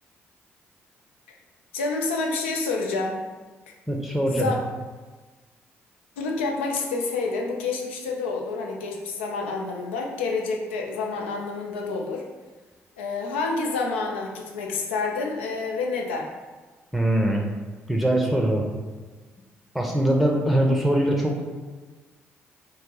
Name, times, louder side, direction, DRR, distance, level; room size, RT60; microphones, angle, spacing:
voice 1, 1.7-3.2 4.3-4.7 6.2-12.2 13.0-16.3, left 3 dB, 90° left, 1 dB, 0.4 m, -28 dB
voice 2, 3.9-4.5 16.9-17.4 17.9-18.7 19.7-21.4, right 1 dB, ahead, -1 dB, 0.6 m, -22 dB
2.8 x 2.7 x 3.7 m, 1.3 s
hypercardioid pair, 45°, 6 cm